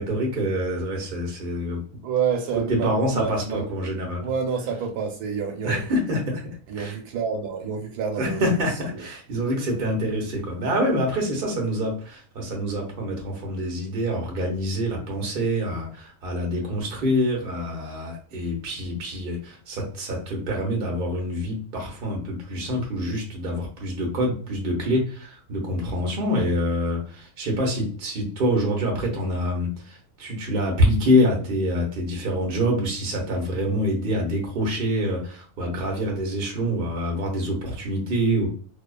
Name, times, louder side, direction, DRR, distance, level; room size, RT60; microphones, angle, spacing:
voice 1, 0.0-1.8 2.5-4.3 5.6-7.0 8.2-38.5, equal, 45° right, 0.8 m, -26 dB
voice 2, 2.0-3.6 4.2-5.8 6.7-9.0, right 6 dB, 90° right, 1.2 m, -28 dB
2.7 x 2.3 x 2.2 m
omnidirectional pair, 1.6 m